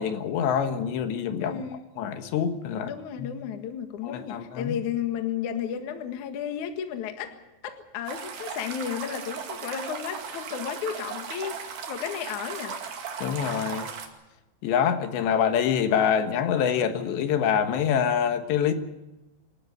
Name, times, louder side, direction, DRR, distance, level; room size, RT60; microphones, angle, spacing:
voice 1, 0.0-1.6 2.0-2.9 3.2-3.3 4.0-4.8 13.2-13.9 14.6-18.7, left 8 dB, 75° left, 8 dB, 3.5 m, -25 dB
voice 2, 1.4-1.8 2.8-12.8, left 8 dB, 55° left, 7 dB, 2.4 m, -33 dB
sound 1, 8.1-14.1, right 6 dB, 55° right, 3.6 m, -37 dB
26.5 x 13.0 x 9.3 m, 0.99 s
omnidirectional pair, 5.3 m